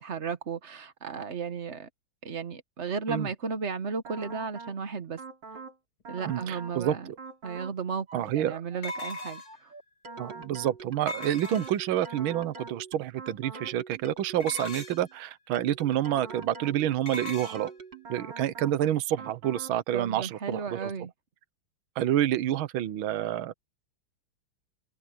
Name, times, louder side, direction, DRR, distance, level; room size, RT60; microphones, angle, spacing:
voice 1, 0.0-1.9 2.2-5.2 6.1-7.1 7.4-9.7 19.9-21.1, right 5 dB, 40° right, 1.3 m, -34 dB
sound 1, 4.0-4.8 5.2-5.8 6.0-6.8 7.2-7.8 8.1-15.1 15.5-18.8 19.2-19.8, right 4 dB, 55° right, 3.9 m, -44 dB
voice 2, 6.3-7.0 8.1-8.6 10.2-17.7 18.1-20.9 22.0-23.5, right 11 dB, 75° right, 1.7 m, -28 dB
sound 2, 7.3-7.4 8.8-9.7 11.1-12.0 14.4-15.1 17.1-17.6, left 2 dB, 75° left, 3.8 m, -38 dB
omnidirectional pair, 2.3 m